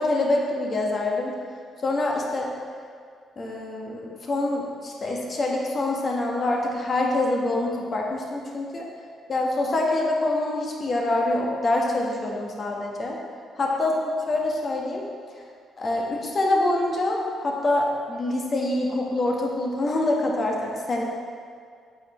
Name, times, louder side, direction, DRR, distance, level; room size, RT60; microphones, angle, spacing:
voice 1, 0.0-1.3 1.8-2.5 3.4-8.9 9.3-13.2 13.6-15.0 15.8-21.0, left 2 dB, 40° left, -1 dB, 1.5 m, -25 dB
8.4 x 6.8 x 3.2 m, 2.1 s
figure-of-eight pair, 40°, 0 cm